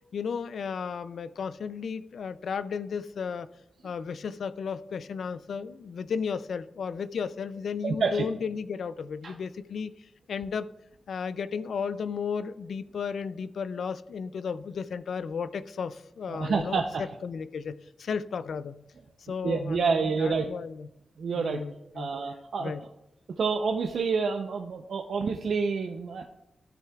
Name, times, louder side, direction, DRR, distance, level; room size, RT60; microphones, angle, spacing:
voice 1, 0.1-3.5 3.8-9.9 10.3-10.7 11.1-16.8 17.2-18.8 19.3-20.9 21.4-22.1 22.6-22.8, left 6 dB, 80° left, 13 dB, 0.3 m, -34 dB
voice 2, 7.8-8.3 9.2-9.3 16.3-17.1 19.4-20.5 21.2-21.6 21.9-22.7 23.4-26.2, right 5 dB, 75° right, 4 dB, 0.6 m, -28 dB
13.0 x 9.0 x 2.3 m, 0.87 s
cardioid pair, 85°, 0 cm